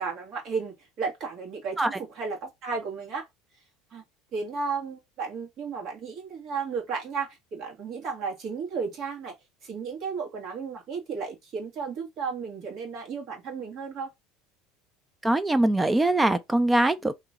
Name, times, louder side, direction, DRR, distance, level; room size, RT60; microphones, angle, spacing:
voice 1, 0.0-3.3 3.9-4.0 4.3-9.3 9.6-14.1, right 5 dB, 50° right, 2.0 m, -34 dB
voice 2, 15.2-17.1, right 1 dB, 10° right, 0.4 m, -22 dB
3.1 x 3.0 x 3.8 m
supercardioid pair, 120°, 0 cm